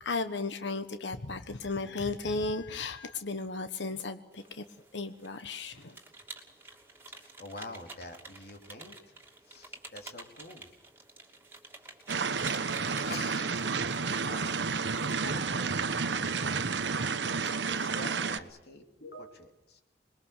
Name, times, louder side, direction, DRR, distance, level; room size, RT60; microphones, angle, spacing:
voice 1, 0.0-4.6 4.9-6.0, left 3 dB, 90° left, 9 dB, 1.2 m, -35 dB
sound 1, 4.3-15.4, right 3 dB, 15° right, 2.8 m, -50 dB
voice 2, 7.1-9.1 9.4-10.7 12.9-13.6 14.2-14.7 15.0-16.7 17.6-19.8, left 2 dB, 60° left, 4 dB, 3.0 m, -46 dB
sound 2, 12.1-18.4, right 5 dB, 85° right, 1.1 m, -31 dB
26.5 x 21.5 x 6.7 m, 0.88 s
head